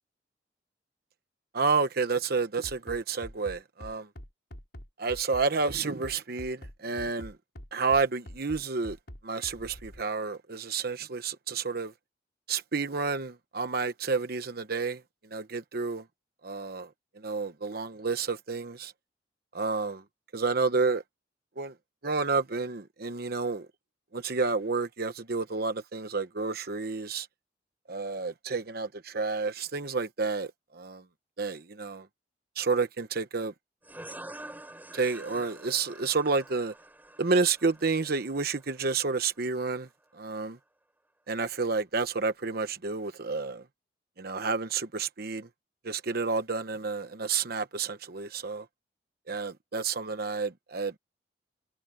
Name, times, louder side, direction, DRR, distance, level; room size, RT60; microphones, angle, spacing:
voice 1, 1.5-4.1 5.0-7.3 7.7-9.0 9.2-11.9 12.5-15.0 15.3-16.0 16.4-16.9 17.2-18.9 19.5-20.0 20.3-21.0 21.6-21.7 22.0-23.7 24.1-27.3 27.9-31.0 31.4-32.1 32.6-33.5 34.9-36.7 37.2-39.9 40.2-40.6 41.3-43.6 44.2-45.5 45.8-48.6 49.3-51.0, right 4 dB, 60° right, 1.0 m, -30 dB
Bass drum, 2.6-10.0, equal, 65° left, 4.7 m, -45 dB
sound 1, 33.8-39.2, right 1 dB, 10° right, 6.8 m, -47 dB
head